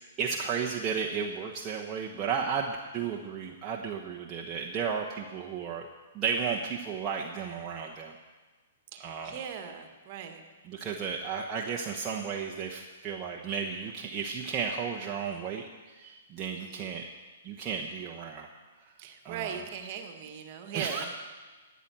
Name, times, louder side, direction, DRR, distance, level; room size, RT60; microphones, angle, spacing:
voice 1, 0.2-5.9 6.1-8.1 9.0-9.4 10.6-17.0 17.4-18.5 18.8-18.9 19.2-19.6 20.7-21.1, right 6 dB, 25° right, -1 dB, 1.1 m, -34 dB
voice 2, 8.9-10.4 16.6-16.9 19.0-21.1, right 8 dB, 45° right, 6 dB, 1.7 m, -39 dB
13.5 x 9.3 x 6.1 m, 1.3 s
hypercardioid pair, 120°, 0 cm